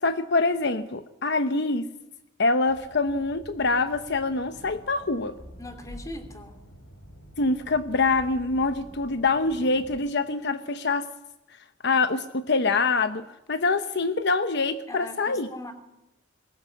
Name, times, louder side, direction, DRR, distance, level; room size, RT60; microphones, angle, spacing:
voice 1, 0.0-1.9 2.4-5.3 7.4-11.0 11.8-15.5, left 3 dB, 60° left, 10 dB, 0.9 m, -25 dB
sound 1, 2.7-10.0, equal, 85° left, 6.3 m, -47 dB
voice 2, 5.6-6.6 14.9-15.7, left 1 dB, 15° left, 6 dB, 2.9 m, -40 dB
22.0 x 19.0 x 8.4 m, 0.95 s
head